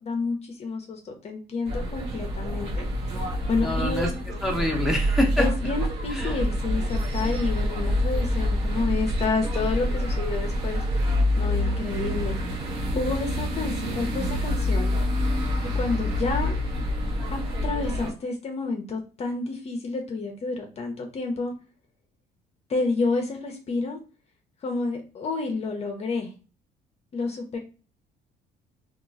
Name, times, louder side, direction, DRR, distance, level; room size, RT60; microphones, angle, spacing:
voice 1, 0.0-2.9 3.1-4.1 5.4-12.4 12.9-14.9 15.6-16.6 17.3-21.5 22.7-24.0 24.6-26.3 27.1-27.6, left 3 dB, 40° left, 3 dB, 0.6 m, -30 dB
sound 1, 1.6-18.1, left 1 dB, 90° right, 0.9 m, -27 dB
voice 2, 3.6-4.1 4.4-5.4 6.1-6.4, left 1 dB, 5° right, 0 dB, 0.8 m, -26 dB
2.9 x 2.3 x 2.5 m, 0.35 s
cardioid pair, 110°, 17 cm